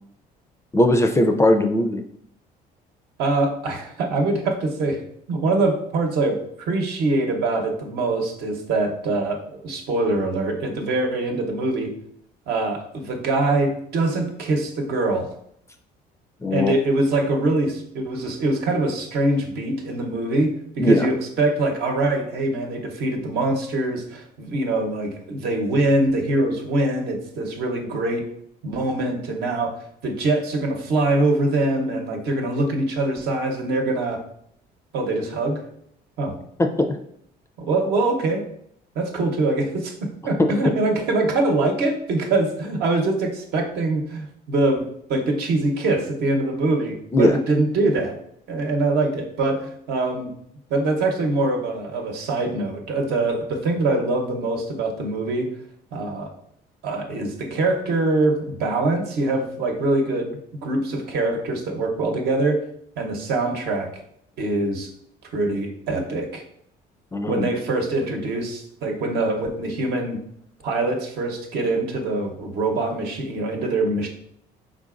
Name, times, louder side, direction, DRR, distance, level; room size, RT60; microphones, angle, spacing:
voice 1, 0.7-2.0 16.4-16.7 20.8-21.1 36.6-37.0 40.4-40.5 47.1-47.4 67.1-67.5, left 1 dB, 15° left, 5 dB, 0.4 m, -19 dB
voice 2, 3.2-5.0 5.3-11.9 12.5-15.3 16.5-20.5 20.8-28.2 28.6-29.8 30.0-34.2 34.9-35.6 36.2-36.4 37.6-38.4 38.9-48.1 48.5-50.3 50.7-55.5 55.9-56.3 56.8-62.6 63.0-63.9 64.4-64.9 65.3-66.4 67.3-70.2 70.6-74.1, right 2 dB, 70° right, 2 dB, 0.9 m, -23 dB
4.8 x 3.9 x 2.5 m, 0.70 s
cardioid pair, 110°, 17 cm